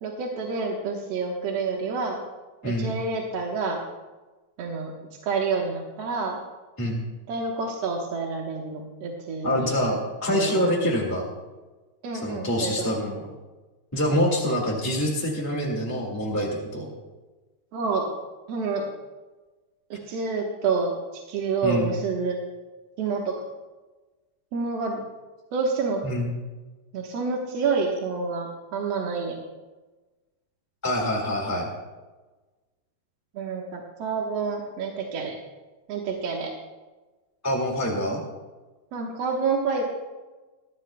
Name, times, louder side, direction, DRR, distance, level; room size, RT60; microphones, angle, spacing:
voice 1, 0.0-2.2 2.6-3.8 4.6-4.9 5.2-6.4 7.3-9.7 10.3-10.7 12.0-12.9 14.1-14.2 17.7-18.1 18.5-18.8 20.1-22.4 23.0-23.3 24.5-25.0 25.5-26.0 26.9-29.3 33.3-35.3 35.9-36.5 38.9-39.8, right 4 dB, 60° right, 0 dB, 2.2 m, -28 dB
voice 2, 9.4-11.2 12.2-13.2 13.9-16.9 21.6-21.9 26.0-26.3 30.8-31.7 37.4-38.2, equal, 10° left, -3 dB, 1.1 m, -25 dB
23.0 x 12.0 x 2.2 m, 1.2 s
omnidirectional pair, 3.4 m